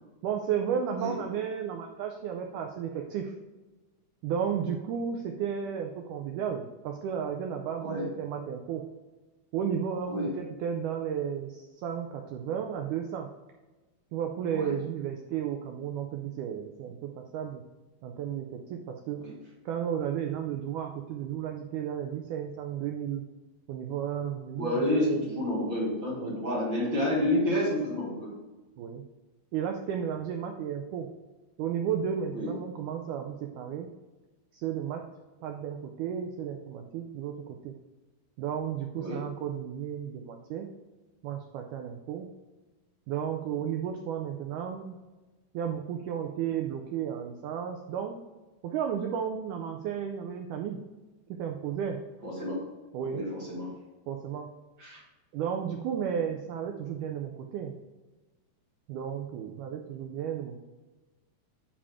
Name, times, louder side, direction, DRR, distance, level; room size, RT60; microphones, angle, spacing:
voice 1, 0.2-3.3 4.2-8.8 9.5-13.3 14.1-17.6 18.0-19.2 19.7-23.2 23.7-25.3 26.2-26.4 28.8-29.0 29.5-31.1 31.6-33.9 34.5-35.0 35.4-37.4 37.6-37.7 38.4-40.7 41.2-42.3 43.1-45.0 45.5-48.2 48.6-50.8 51.4-52.0 52.9-53.2 54.1-54.5 55.3-57.8 58.9-60.6, right 8 dB, 90° right, 3 dB, 1.8 m, -33 dB
voice 2, 24.6-28.3 32.3-32.5 39.0-39.2 52.2-52.6 53.1-53.7 54.8-55.0, left 1 dB, 40° right, -5 dB, 2.1 m, -29 dB
8.6 x 4.9 x 3.5 m, 1.2 s
omnidirectional pair, 4.3 m